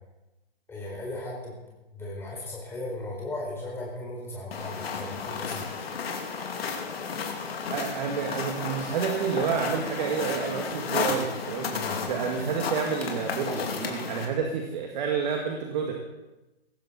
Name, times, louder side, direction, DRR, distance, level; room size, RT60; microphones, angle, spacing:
voice 1, 0.7-1.5 1.9-5.6 11.7-12.0, left 2 dB, 5° left, -4 dB, 4.6 m, -36 dB
Footsteps on Snow by River, 4.5-14.3, left 5 dB, 65° left, 2.7 m, -33 dB
voice 2, 7.7-11.7 12.1-15.9, right 6 dB, 45° right, 2 dB, 2.1 m, -29 dB
17.5 x 15.0 x 4.3 m, 1.0 s
hypercardioid pair, 150°, 32 cm